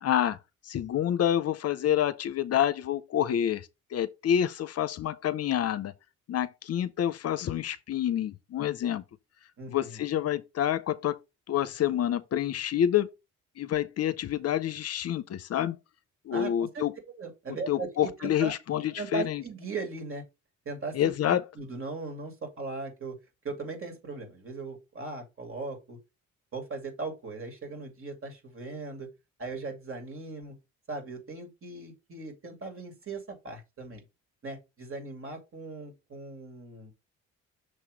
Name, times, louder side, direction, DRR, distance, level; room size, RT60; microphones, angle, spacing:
voice 1, 0.0-0.4 0.6-5.9 6.3-9.0 9.7-11.2 11.5-13.1 13.6-15.8 16.3-16.9 17.7-19.4 20.9-21.4, left 10 dB, 55° left, 0.6 m, -28 dB
voice 2, 9.6-10.0 16.3-16.8 17.2-18.5 19.0-20.2 20.6-23.2 23.4-26.0 26.5-29.1 29.4-30.6 30.9-34.0 34.4-36.9, right 3 dB, 45° right, 2.7 m, -38 dB
6.5 x 3.0 x 5.0 m
cardioid pair, 90°, 30 cm